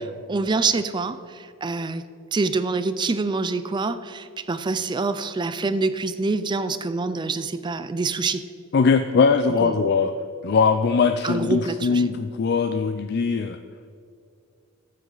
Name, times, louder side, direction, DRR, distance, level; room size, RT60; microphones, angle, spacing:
voice 1, 0.3-2.0 2.3-8.4 9.6-9.8 11.2-12.1, right 3 dB, 20° right, 12 dB, 0.4 m, -26 dB
voice 2, 8.7-10.1 10.4-13.6, left 5 dB, 55° left, 9 dB, 0.4 m, -20 dB
13.5 x 7.7 x 3.9 m, 2.4 s
head